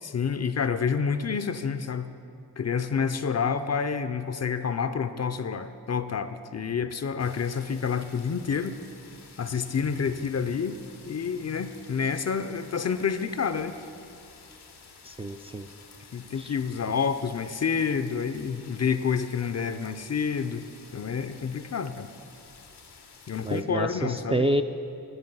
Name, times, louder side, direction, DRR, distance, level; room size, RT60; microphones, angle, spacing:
voice 1, 0.0-2.1 2.6-8.8 9.4-10.8 11.1-13.8 16.1-20.6 20.9-22.1 23.3-24.5, left 6 dB, 40° left, 11 dB, 0.5 m, -28 dB
sound 1, 7.2-23.6, left 5 dB, 80° left, 0.9 m, -51 dB
voice 2, 15.0-15.7 16.4-16.5 23.4-24.6, right 1 dB, 15° right, 5 dB, 0.3 m, -28 dB
9.9 x 6.8 x 5.4 m, 2.6 s
cardioid pair, 40°, 39 cm